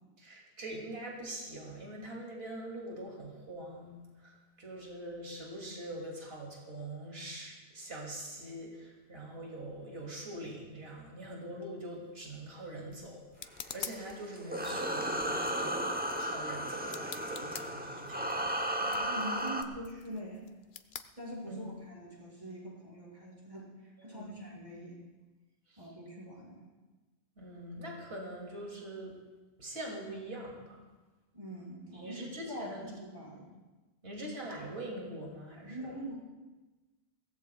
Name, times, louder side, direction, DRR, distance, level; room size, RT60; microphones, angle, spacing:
voice 1, 0.2-18.4 21.5-21.7 24.0-24.4 25.7-25.9 27.4-29.1 29.6-30.8 31.9-32.9 34.0-35.9, right 1 dB, 65° right, -2 dB, 2.8 m, -43 dB
sound 1, 12.0-21.9, left 7 dB, 55° left, 0.7 m, -49 dB
sound 2, 13.6-19.6, right 1 dB, 10° right, 0.7 m, -35 dB
voice 2, 18.8-20.5 21.2-23.7 24.0-25.0 25.8-26.6 31.3-33.5 35.6-36.2, equal, 30° right, -6 dB, 5.5 m, -43 dB
23.0 x 17.5 x 2.3 m, 1.2 s
omnidirectional pair, 1.1 m